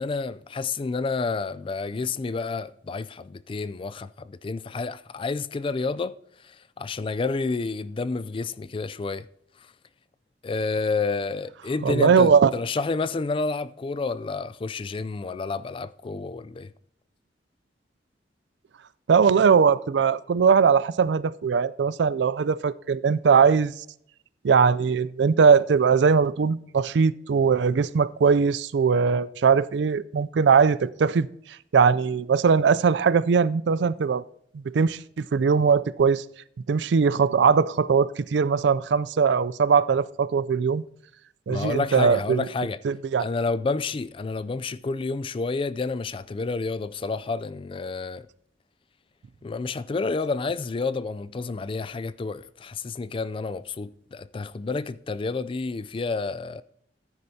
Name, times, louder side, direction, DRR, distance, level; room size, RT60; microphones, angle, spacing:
voice 1, 0.0-6.2 6.4-9.3 10.4-16.7 41.5-42.8 43.2-48.3 49.4-56.6, left 4 dB, 30° left, 0.3 m, -29 dB
voice 2, 11.8-12.5 19.1-23.7 24.4-31.3 31.7-34.2 34.7-36.2 36.7-40.8 41.5-42.5 42.8-43.3, right 6 dB, 75° right, 0.4 m, -20 dB
14.5 x 9.7 x 2.8 m
head